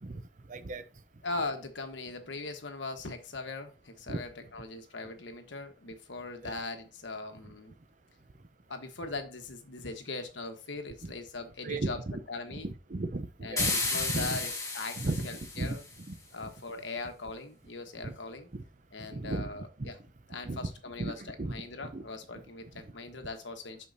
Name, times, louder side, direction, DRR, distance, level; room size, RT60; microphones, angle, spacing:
voice 1, 0.5-0.8 4.1-4.2 6.4-6.5 11.0-11.1 11.6-12.2 12.5-14.4 15.0-15.8 16.1-16.2 18.0-18.1 18.5-18.6 19.1-19.5 19.8-19.9 20.5-20.7 21.0-21.5 21.8-22.0, right 2 dB, 40° right, 0.6 m, -35 dB
voice 2, 1.2-7.7 8.7-12.0 12.3-12.7 13.4-15.8 16.3-18.5 18.9-20.0 20.3-23.9, left 3 dB, 70° left, 1.3 m, -40 dB
sound 1, 13.6-16.0, left 3 dB, 15° left, 1.6 m, -33 dB
8.4 x 6.2 x 2.7 m
head